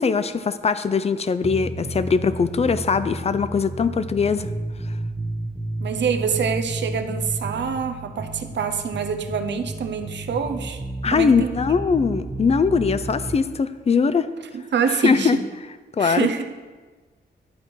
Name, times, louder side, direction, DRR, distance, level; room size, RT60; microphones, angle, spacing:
voice 1, 0.0-4.5 11.0-14.3 14.9-15.4 16.0-16.3, left 5 dB, 35° left, 13 dB, 0.4 m, -21 dB
sound 1, 1.4-13.4, right 2 dB, 10° right, 0.9 m, -32 dB
voice 2, 5.8-10.8 11.1-11.5 14.5-15.4 16.0-16.4, right 6 dB, 75° right, 8 dB, 0.7 m, -25 dB
11.0 x 4.4 x 4.6 m, 1.4 s
cardioid pair, 85°, 18 cm